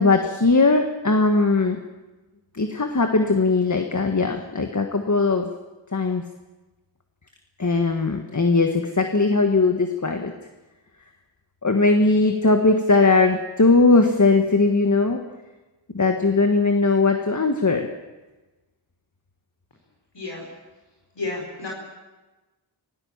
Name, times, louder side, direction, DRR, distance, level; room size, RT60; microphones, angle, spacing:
voice 1, 0.0-1.8 2.6-5.5 5.9-6.2 7.6-10.3 11.6-15.2 15.9-17.9, left 3 dB, 40° left, 5 dB, 1.6 m, -19 dB
voice 2, 21.2-21.7, left 3 dB, 65° left, -1 dB, 4.9 m, -31 dB
26.0 x 16.5 x 7.3 m, 1.2 s
wide cardioid pair, 70°, 45 cm